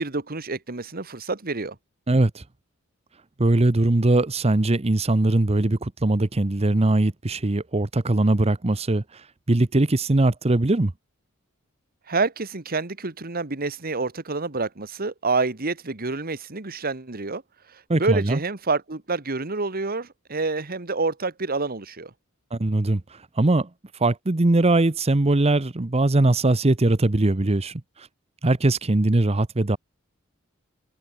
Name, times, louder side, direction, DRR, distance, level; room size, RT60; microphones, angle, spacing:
voice 1, 0.0-1.7 12.1-17.4 17.7-22.1, right 3 dB, 45° right, 1.7 m, -28 dB
voice 2, 2.1-2.4 3.4-9.0 9.5-10.9 17.9-18.4 22.5-23.0 23.4-23.7 24.0-27.8 28.4-29.8, right 2 dB, 30° right, 0.9 m, -21 dB
head